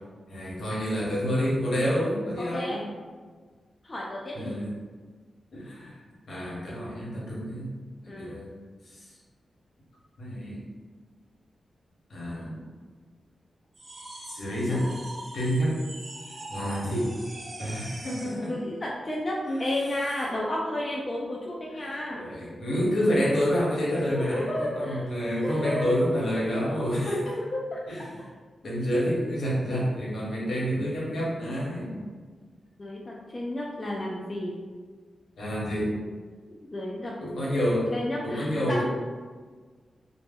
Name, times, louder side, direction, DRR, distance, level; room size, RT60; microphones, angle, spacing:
voice 1, 0.3-2.8 4.3-4.7 5.5-6.0 6.3-7.7 8.0-8.5 8.9-9.0 10.2-10.6 12.1-12.6 14.3-14.9 15.3-15.8 16.5-17.1 17.6-18.5 19.5-19.7 21.8-27.4 27.9-28.0 28.6-32.0 35.4-36.0 37.2-37.9 38.2-38.8, equal, 75° left, -6 dB, 0.9 m, -28 dB
voice 2, 2.4-2.8 3.8-4.6 8.1-8.3 18.2-22.2 24.1-25.0 25.4-25.9 27.4-27.8 32.8-34.5 36.5-37.1 37.9-38.8, left 1 dB, 25° left, -4 dB, 0.3 m, -32 dB
sound 1, 13.7-18.5, right 1 dB, 40° right, 0.4 m, -42 dB
2.1 x 2.0 x 3.4 m, 1.5 s
wide cardioid pair, 130°, 0 cm